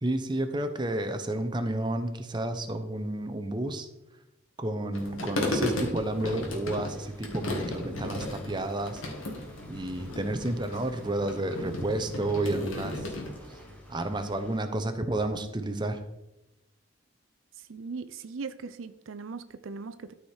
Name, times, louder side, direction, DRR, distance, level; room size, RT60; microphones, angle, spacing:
voice 1, 0.0-3.9 4.6-9.0 9.7-13.1 13.5-13.6 13.9-16.0, right 1 dB, 20° right, 7 dB, 0.7 m, -31 dB
sound 1, 4.9-13.3, left 1 dB, 80° left, 2.0 m, -35 dB
sound 2, 6.2-14.6, equal, 10° left, 1.3 m, -50 dB
voice 2, 17.6-20.1, right 4 dB, 75° right, 12 dB, 0.5 m, -39 dB
13.0 x 4.9 x 4.4 m, 0.92 s
head